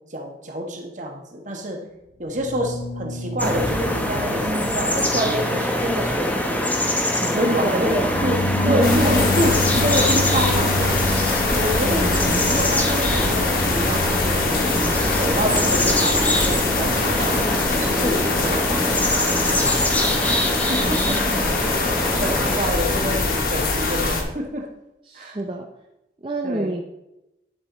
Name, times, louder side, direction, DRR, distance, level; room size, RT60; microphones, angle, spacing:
voice 1, 0.1-1.8 2.2-6.6 7.1-14.7 15.2-19.3 19.6-19.8 20.7-21.2 21.6-21.9 22.2-24.7 25.1-25.4 26.4-26.7, equal, 45° right, 2 dB, 1.4 m, -28 dB
sound 1, 2.3-20.4, left 2 dB, 90° left, 1.1 m, -30 dB
sound 2, 3.4-22.6, left 1 dB, 10° left, 0.9 m, -24 dB
voice 2, 4.4-4.7 7.6-8.1 8.5-9.4 11.8-12.8 14.7-15.1 20.8-21.6 25.1-25.7 26.2-26.8, right 1 dB, 30° right, 2 dB, 0.6 m, -28 dB
sound 3, 8.8-24.2, left 3 dB, 55° left, 1.3 m, -23 dB
11.0 x 5.1 x 3.9 m, 0.91 s
head